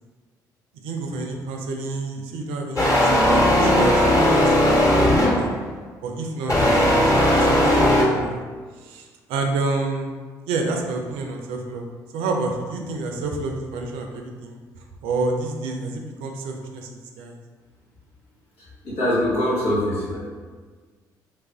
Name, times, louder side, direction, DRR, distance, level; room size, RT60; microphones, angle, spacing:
voice 1, 0.8-5.5 6.0-8.4 8.8-10.1 10.5-11.9 12.1-14.6 15.0-17.4, right 3 dB, 75° right, 3 dB, 0.4 m, -29 dB
sound 1, 2.8-5.6 6.5-8.0, left 1 dB, 35° left, 1.1 m, -17 dB
voice 2, 18.6-20.2, left 1 dB, 80° left, -8 dB, 1.5 m, -23 dB
3.2 x 2.5 x 3.3 m, 1.5 s
hypercardioid pair, 55°, 9 cm